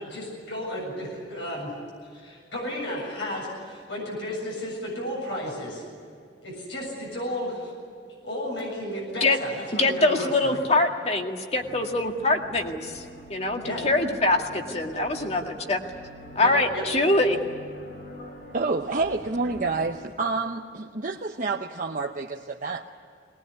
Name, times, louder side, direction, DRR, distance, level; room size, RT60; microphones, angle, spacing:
voice 1, 0.0-1.7 2.1-5.8 6.4-7.7 8.2-10.6 13.6-13.8 16.4-16.8, left 1 dB, 85° left, -2 dB, 7.4 m, -33 dB
voice 2, 9.8-13.0 13.3-15.8 16.4-17.4, left 2 dB, 35° left, 3 dB, 2.1 m, -24 dB
sound 1, 11.6-20.0, equal, 65° left, 6.9 m, -44 dB
voice 3, 18.5-22.9, right 3 dB, 45° right, 2 dB, 0.9 m, -28 dB
21.5 x 20.0 x 9.8 m, 2.3 s
head